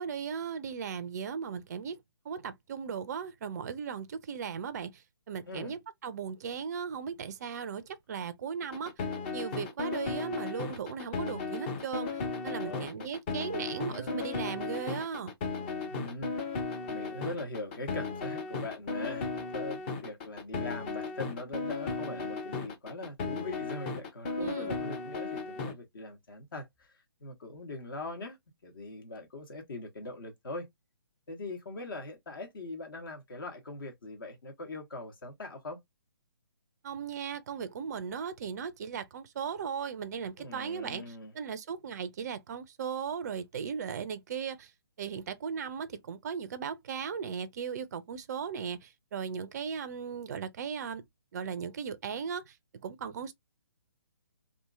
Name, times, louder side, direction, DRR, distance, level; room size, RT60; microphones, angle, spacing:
voice 1, 0.0-2.0 2.3-5.0 5.3-8.9 9.3-12.1 12.4-15.3 24.4-24.7 36.8-44.7 45.0-51.0 51.3-52.5 52.8-53.3, right 6 dB, 40° right, 0.4 m, -37 dB
sound 1, 8.6-25.7, left 4 dB, 25° left, 0.5 m, -35 dB
voice 2, 12.5-13.1 13.9-14.2 15.9-16.3 16.8-26.9 27.2-28.4 28.6-30.7 31.3-35.8 40.4-41.3, left 2 dB, 55° left, 1.1 m, -41 dB
2.7 x 2.5 x 2.3 m
figure-of-eight pair, 135°, 14 cm